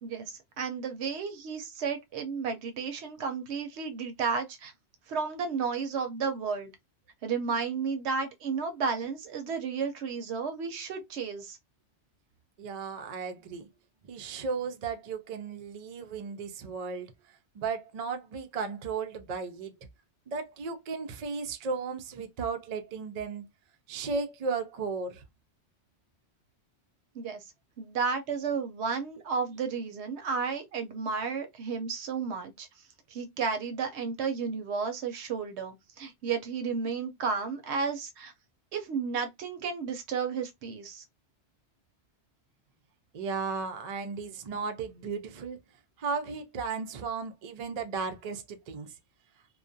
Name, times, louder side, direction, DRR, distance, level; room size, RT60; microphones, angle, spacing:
voice 1, 0.0-4.7 5.1-6.7 7.2-11.6 27.1-27.4 27.8-32.7 33.1-38.3 38.7-41.0, right 5 dB, 75° right, 0.9 m, -32 dB
voice 2, 12.6-13.7 14.1-19.7 20.3-23.4 23.9-25.2 43.1-45.6 46.0-48.9, right 5 dB, 55° right, 0.4 m, -35 dB
2.3 x 2.1 x 2.5 m
omnidirectional pair, 1.2 m